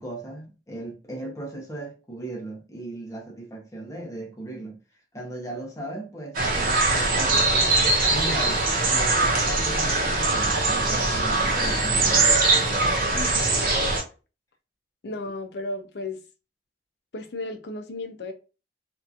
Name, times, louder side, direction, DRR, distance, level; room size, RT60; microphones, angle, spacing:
voice 1, 0.0-4.8 5.1-7.5 8.1-12.7, right 2 dB, 15° left, 0.7 m, -37 dB
sound 1, 6.3-14.0, right 3 dB, 50° right, 0.8 m, -22 dB
voice 2, 13.1-13.5 15.0-16.2 17.1-18.3, left 2 dB, 60° left, 0.5 m, -34 dB
2.8 x 2.5 x 2.3 m
head